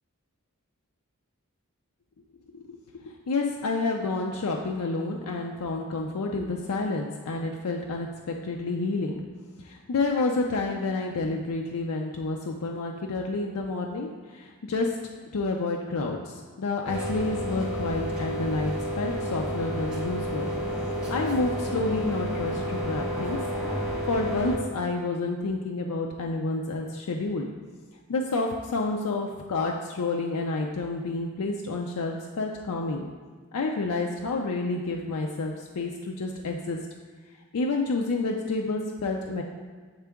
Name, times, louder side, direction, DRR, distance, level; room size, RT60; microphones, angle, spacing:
voice 1, 3.0-9.2 9.6-15.0 15.3-20.5 21.1-23.4 24.1-27.5 28.1-33.1 33.5-36.8 37.5-39.4, left 3 dB, 80° left, 1 dB, 0.5 m, -29 dB
sound 1, 16.8-24.6, equal, 5° right, 1.2 m, -31 dB
8.0 x 3.7 x 3.5 m, 1.5 s
head